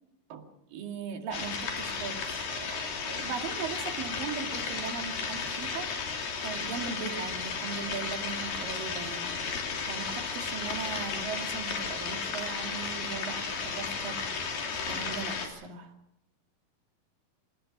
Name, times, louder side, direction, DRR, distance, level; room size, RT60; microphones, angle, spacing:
voice 1, 0.3-5.9 6.4-9.6 9.9-14.2 14.9-15.9, right 6 dB, 75° right, 4 dB, 3.9 m, -39 dB
sound 1, 1.3-15.5, left 5 dB, 80° left, 4.8 m, -34 dB
27.5 x 18.0 x 6.1 m, 0.83 s
omnidirectional pair, 4.0 m